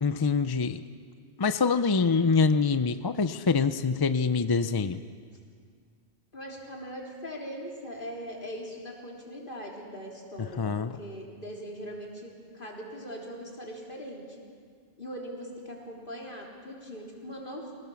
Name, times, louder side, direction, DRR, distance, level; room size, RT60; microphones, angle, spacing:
voice 1, 0.0-0.8 1.4-5.0 10.6-10.9, left 4 dB, 35° left, 11 dB, 0.4 m, -25 dB
voice 2, 6.3-14.4 15.0-17.7, equal, 50° left, -2 dB, 3.7 m, -41 dB
24.5 x 17.5 x 7.1 m, 2.1 s
omnidirectional pair, 1.1 m